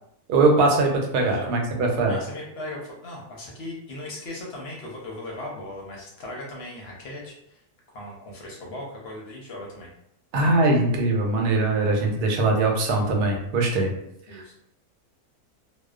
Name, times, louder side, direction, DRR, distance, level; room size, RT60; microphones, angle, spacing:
voice 1, 0.3-2.2 10.3-13.9 14.3-14.5, right 2 dB, 90° right, 1 dB, 1.1 m, -21 dB
voice 2, 1.2-1.5 2.1-7.6 7.9-9.9 14.3-14.5, left 1 dB, 60° left, -2 dB, 0.7 m, -38 dB
2.5 x 2.1 x 2.3 m, 0.76 s
omnidirectional pair, 1.6 m